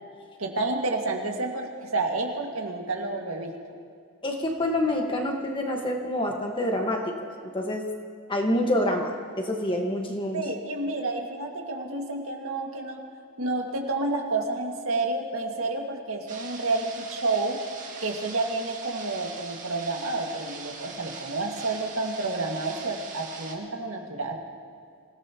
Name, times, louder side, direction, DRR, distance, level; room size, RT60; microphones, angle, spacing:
voice 1, 0.4-3.5 10.3-13.0 13.4-17.6 18.0-24.4, right 2 dB, 70° right, 1 dB, 2.0 m, -30 dB
voice 2, 4.2-7.9 8.3-10.4, left 1 dB, 20° left, 1 dB, 1.5 m, -27 dB
sound 1, 16.3-23.5, right 4 dB, 35° right, 2.0 m, -42 dB
26.0 x 17.5 x 3.0 m, 2.3 s
head